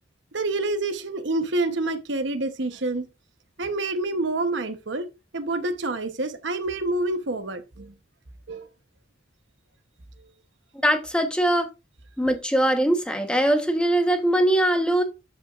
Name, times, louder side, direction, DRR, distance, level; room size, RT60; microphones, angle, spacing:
voice 1, 0.3-3.1 3.6-5.1 5.3-7.9 8.5-8.7, right 2 dB, 65° right, 1.0 m, -27 dB
voice 2, 10.8-11.7 12.2-15.0, right 1 dB, 5° left, 1.1 m, -21 dB
12.5 x 5.4 x 2.5 m
head